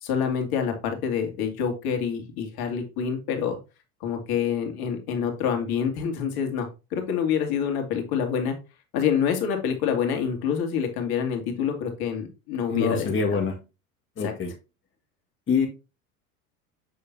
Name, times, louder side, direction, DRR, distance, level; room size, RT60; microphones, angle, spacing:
voice 1, 0.0-3.6 4.0-8.6 8.9-13.4 14.2-14.3, left 7 dB, 55° left, 2.4 m, -27 dB
voice 2, 12.7-13.6 14.2-14.5 15.5-15.7, left 5 dB, 25° left, 1.7 m, -25 dB
7.7 x 6.5 x 2.7 m
hypercardioid pair, 85°, 44 cm